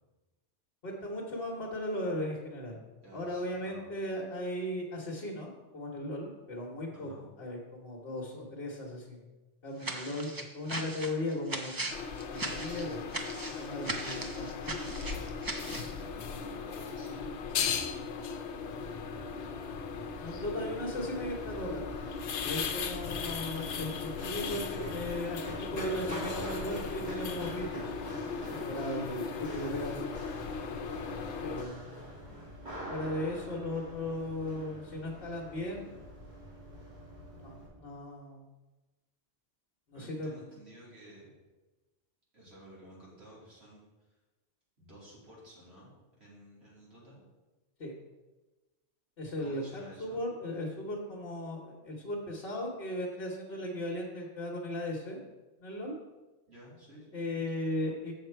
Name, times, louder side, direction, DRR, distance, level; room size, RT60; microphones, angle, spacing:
voice 1, 0.8-2.8 3.1-9.2 9.6-11.8 12.3-13.0 13.6-14.8 20.2-22.1 22.4-27.9 28.5-30.1 31.4-31.9 32.9-36.0 37.4-37.5 37.8-38.5 39.9-40.3 47.8-47.9 49.2-55.2 55.6-55.9 57.1-58.1, left 1 dB, 55° left, -3 dB, 1.3 m, -37 dB
voice 2, 3.0-3.9 6.9-7.2 13.8-14.0 15.6-18.0 18.4-18.9 28.9-29.8 30.9-31.5 39.9-41.3 42.3-43.8 44.8-45.9 46.2-47.2 49.4-50.2 56.5-57.4, right 1 dB, 65° right, -6 dB, 3.1 m, -53 dB
sound 1, 9.8-15.9, right 2 dB, 25° right, 0.5 m, -38 dB
sound 2, 11.9-31.6, left 6 dB, 75° left, 0.9 m, -37 dB
Run, 18.6-37.7, equal, 40° right, 3.1 m, -45 dB
7.1 x 6.7 x 4.5 m, 1.2 s
omnidirectional pair, 1.2 m